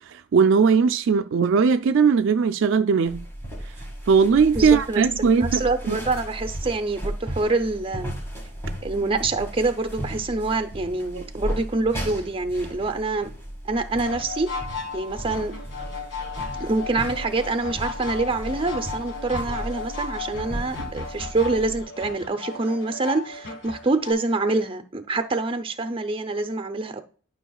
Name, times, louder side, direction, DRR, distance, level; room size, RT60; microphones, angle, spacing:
voice 1, 0.1-3.3 4.1-5.6 5.9-6.0 11.1-11.3, right 5 dB, 65° right, 0.4 m, -19 dB
sound 1, 3.1-21.8, equal, 15° left, 2.0 m, -35 dB
voice 2, 4.5-5.0 5.4-8.2 8.8-13.3 13.6-14.5 14.9-15.5 16.5-27.0, right 3 dB, 25° right, 0.6 m, -26 dB
sound 2, 14.0-24.1, left 4 dB, 65° left, 1.9 m, -35 dB
12.0 x 5.7 x 2.3 m
head